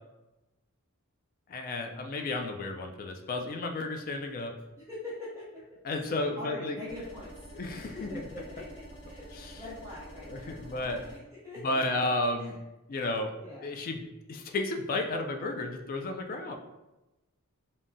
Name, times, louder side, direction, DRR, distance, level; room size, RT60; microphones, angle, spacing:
voice 1, 1.5-4.5 5.8-6.8 7.5-8.2 9.3-9.6 10.3-11.0 11.6-12.5 12.9-13.3 13.6-14.0 14.3-16.5, left 2 dB, 40° left, 5 dB, 0.3 m, -32 dB
voice 2, 4.8-5.6 6.1-7.4 7.8-11.8 12.4-12.5 13.4-13.8, left 1 dB, 15° right, -11 dB, 0.7 m, -43 dB
sound 1, 6.9-11.2, right 1 dB, 20° left, 0.7 m, -48 dB
3.5 x 2.0 x 2.6 m, 1.0 s
head